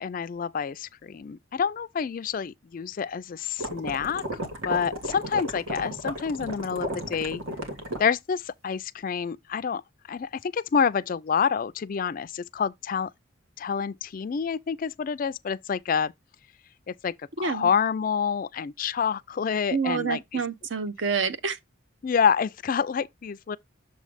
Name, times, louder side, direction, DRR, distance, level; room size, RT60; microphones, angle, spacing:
voice 1, 0.0-7.4 8.0-9.8 10.1-13.1 13.6-16.1 16.9-20.4 22.0-23.6, left 6 dB, 45° left, 0.3 m, -28 dB
sound 1, 3.6-8.0, equal, 90° right, 1.7 m, -34 dB
voice 2, 17.4-17.7 19.7-21.6, right 5 dB, 60° right, 0.7 m, -28 dB
6.9 x 3.1 x 5.0 m
head